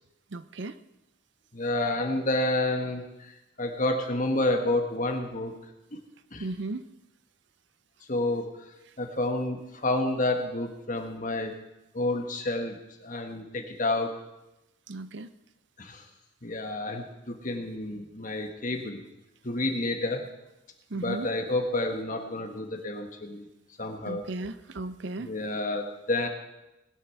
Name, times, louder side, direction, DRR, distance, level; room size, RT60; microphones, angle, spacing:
voice 1, 0.3-0.7 6.4-6.8 14.9-15.3 20.9-21.3 24.1-25.3, right 2 dB, 55° right, 13 dB, 0.6 m, -35 dB
voice 2, 1.5-3.3 3.6-5.5 5.9-6.0 6.3-6.5 8.1-8.7 9.0-11.5 11.9-12.8 13.0-14.1 15.8-16.0 16.4-19.0 19.4-20.2 20.9-23.4 23.8-24.2 25.2-26.3, left 2 dB, 40° left, 3 dB, 1.6 m, -29 dB
20.0 x 8.3 x 5.8 m, 0.94 s
head